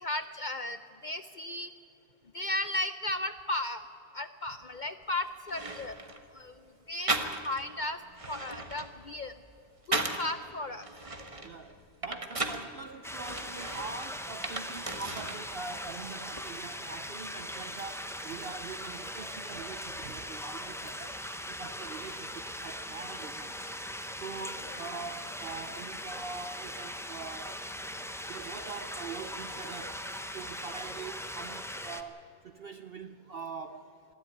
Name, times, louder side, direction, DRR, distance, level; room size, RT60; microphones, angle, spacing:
voice 1, 0.0-0.8 1.0-1.7 2.3-3.8 4.1-6.0 6.3-6.5 6.9-7.1 7.4-8.0 8.3-9.3 9.9-10.9, left 1 dB, 55° left, 10 dB, 0.5 m, -35 dB
sound 1, 5.0-5.1 5.5-6.2 7.1-7.7 8.1-10.3 10.8-12.7 13.3-15.4 15.7-16.5, right 2 dB, 25° right, 1.2 m, -36 dB
voice 2, 11.4-21.2 21.5-23.6 24.2-27.6 28.3-30.0 30.3-33.9, right 4 dB, 50° right, 9 dB, 0.8 m, -43 dB
sound 2, 13.0-32.0, equal, 5° left, 0.6 m, -40 dB
20.5 x 14.0 x 9.8 m, 2.7 s
omnidirectional pair, 1.5 m